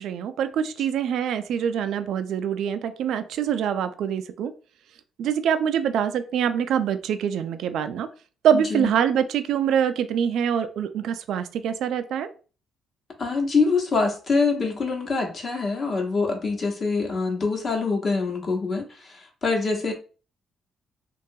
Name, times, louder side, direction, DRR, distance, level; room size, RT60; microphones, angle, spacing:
voice 1, 0.0-4.5 5.2-8.1 8.4-12.3, right 8 dB, 75° right, 0.3 m, -24 dB
voice 2, 8.5-8.9 13.2-19.9, left 4 dB, 45° left, 0.8 m, -25 dB
2.9 x 2.2 x 2.6 m
cardioid pair, 90°, 0 cm